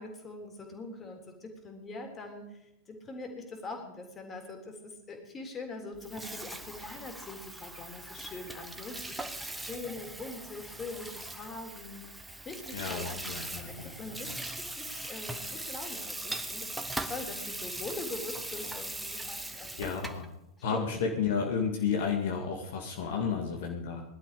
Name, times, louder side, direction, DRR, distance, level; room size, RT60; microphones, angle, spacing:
voice 1, 0.0-2.6 2.9-20.0 20.7-21.0, left 3 dB, 20° left, 4 dB, 3.6 m, -43 dB
Water tap faucet / Sink (filling or washing), 5.9-20.3, right 2 dB, 5° right, 1.3 m, -40 dB
voice 2, 12.7-13.9 19.8-20.3 20.6-24.0, left 6 dB, 55° left, 2 dB, 2.1 m, -32 dB
19.5 x 12.0 x 5.1 m, 0.86 s
figure-of-eight pair, 90°, 0 cm